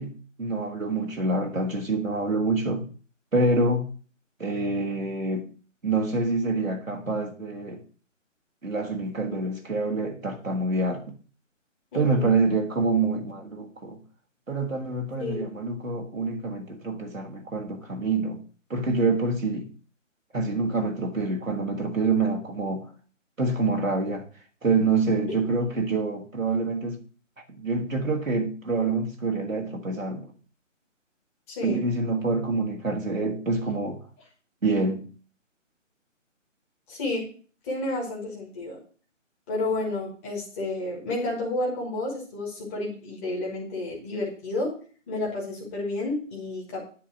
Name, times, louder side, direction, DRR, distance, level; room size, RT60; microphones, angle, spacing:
voice 1, 0.0-2.9 3.3-3.9 4.4-5.5 5.8-7.8 8.6-11.1 11.9-14.0 14.5-18.4 18.7-19.7 20.3-22.9 23.4-24.3 24.6-27.0 27.6-30.3 31.6-34.0 34.6-35.0, right 3 dB, 85° right, 1.7 m, -26 dB
voice 2, 11.9-12.3 15.2-15.4 31.5-31.8 36.9-37.3 37.6-38.8 39.5-44.7 45.1-46.8, left 2 dB, 10° left, 1.5 m, -31 dB
9.8 x 3.8 x 6.0 m
figure-of-eight pair, 150°, 39 cm